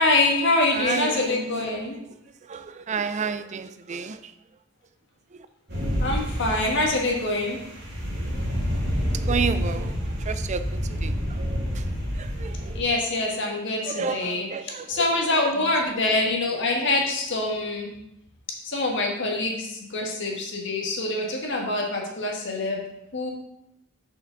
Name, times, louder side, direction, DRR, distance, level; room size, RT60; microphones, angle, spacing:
voice 1, 0.0-2.0 6.0-7.6 11.8-11.9 12.7-17.9 18.6-22.8 23.1-23.3, left 2 dB, 60° left, 1.5 m, -25 dB
voice 2, 0.7-1.8 2.4-4.3 5.3-5.5 9.1-11.4 11.7-11.9 12.1-12.8 13.8-15.7, right 5 dB, 35° right, 0.4 m, -32 dB
sound 1, 5.7-12.8, equal, 60° right, 2.9 m, -28 dB
6.8 x 5.7 x 3.9 m
head